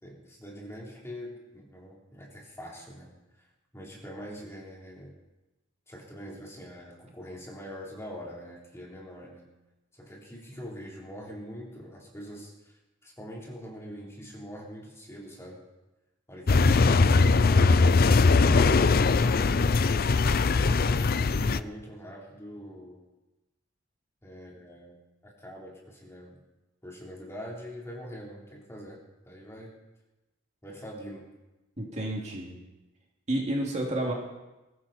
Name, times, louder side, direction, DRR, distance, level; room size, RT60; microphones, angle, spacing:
voice 1, 0.0-3.1 3.4-3.5 3.7-5.1 5.9-9.5 9.9-12.7 13.0-15.6 20.4-23.0 24.2-25.0 25.2-26.4 26.8-29.7 30.6-31.2, equal, 15° left, -3 dB, 4.0 m, -44 dB
sound 1, 16.5-21.6, left 4 dB, 50° left, 0.5 m, -21 dB
voice 2, 31.8-32.6 33.3-34.1, right 1 dB, 35° right, -1 dB, 2.8 m, -30 dB
22.0 x 14.0 x 4.4 m, 1.0 s
head